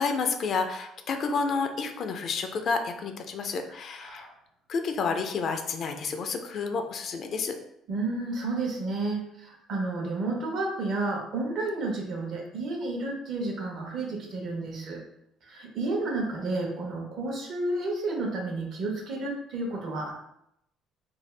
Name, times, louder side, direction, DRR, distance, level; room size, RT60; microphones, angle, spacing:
voice 1, 0.0-4.3 4.7-7.6, left 4 dB, 55° left, 6 dB, 0.4 m, -30 dB
voice 2, 3.7-4.3 7.9-15.0 15.4-20.1, right 2 dB, 60° right, 0 dB, 0.9 m, -31 dB
2.6 x 2.3 x 3.2 m, 0.78 s
cardioid pair, 95°, 0 cm